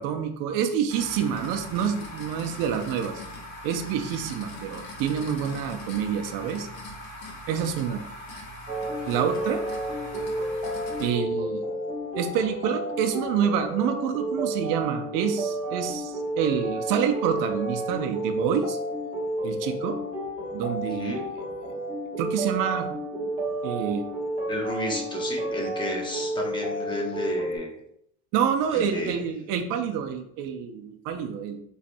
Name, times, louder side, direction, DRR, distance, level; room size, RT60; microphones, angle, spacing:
voice 1, 0.0-3.1 3.6-6.7 7.5-8.0 9.1-9.6 11.0-11.6 12.1-18.8 19.4-20.0 20.5-21.2 21.6-21.7 22.2-22.9 23.6-24.0 28.3-31.6, right 8 dB, 60° right, 6 dB, 0.5 m, -27 dB
sound 1, 0.9-11.1, left 1 dB, 65° left, 1.1 m, -41 dB
sound 2, 8.7-27.6, right 1 dB, 20° right, 1.0 m, -31 dB
voice 2, 20.8-21.3 24.5-27.7 28.7-29.2, left 1 dB, 15° left, 0 dB, 0.7 m, -32 dB
4.1 x 3.2 x 2.5 m, 0.73 s
cardioid pair, 150°, 37 cm